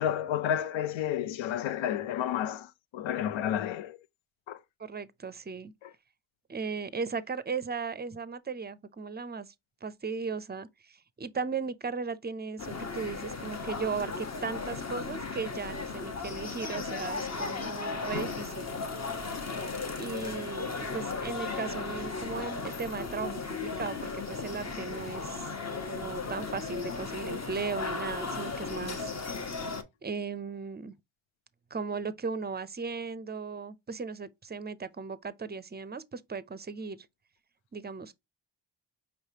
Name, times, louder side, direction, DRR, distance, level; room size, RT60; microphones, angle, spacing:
voice 1, 0.0-4.0 4.5-4.6 5.8-5.9, left 10 dB, 85° left, 0.6 m, -31 dB
voice 2, 4.8-5.7 6.5-9.5 9.8-18.7 20.0-25.5 25.9-29.3 30.0-30.9 31.7-37.1 37.7-38.1, right 5 dB, 25° right, 0.5 m, -37 dB
sound 1, 12.6-29.8, left 4 dB, 35° left, 0.9 m, -36 dB
5.2 x 3.2 x 2.7 m
cardioid pair, 65°, 45 cm